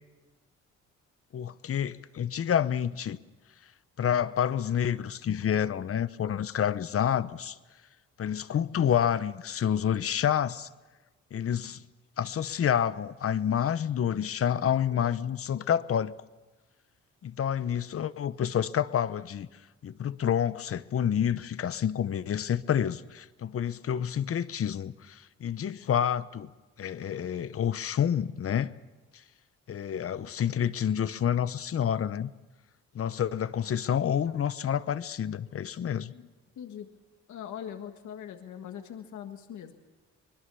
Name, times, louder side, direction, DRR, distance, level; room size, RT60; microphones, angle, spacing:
voice 1, 1.3-3.2 4.0-7.6 8.2-10.7 11.3-11.8 12.2-16.2 17.2-19.5 19.8-26.5 26.8-28.7 29.7-32.3 32.9-36.1, left 9 dB, 50° left, 15 dB, 0.9 m, -28 dB
voice 2, 35.8-36.9 37.3-39.7, left 9 dB, 70° left, 6 dB, 1.6 m, -42 dB
24.5 x 20.5 x 7.0 m, 1.2 s
cardioid pair, 90°, 30 cm